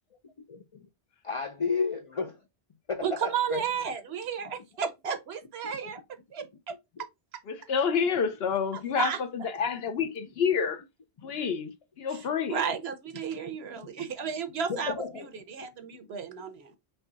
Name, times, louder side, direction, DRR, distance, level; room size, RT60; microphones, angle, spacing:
voice 1, 0.2-0.9 1.2-2.4 2.9-3.6 5.6-5.9 7.0-7.1 11.2-11.3 14.7-15.3 15.6-15.7, left 5 dB, 50° left, 0.4 m, -33 dB
voice 2, 3.0-6.8 9.0-9.2 12.5-14.9 15.5-16.7, right 7 dB, 70° right, 1.0 m, -33 dB
voice 3, 7.5-10.8 11.2-12.6, left 6 dB, 65° left, 0.9 m, -29 dB
5.4 x 2.2 x 3.9 m
omnidirectional pair, 1.1 m